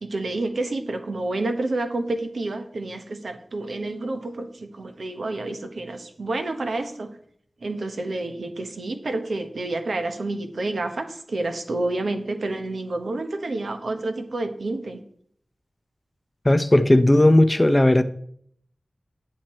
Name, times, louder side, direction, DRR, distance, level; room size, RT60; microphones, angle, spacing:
voice 1, 0.0-7.2 7.6-15.0, right 2 dB, 85° right, 1.1 m, -29 dB
voice 2, 16.4-18.0, left 1 dB, 25° left, 0.7 m, -16 dB
9.1 x 6.5 x 4.3 m
wide cardioid pair, 55°, 0 cm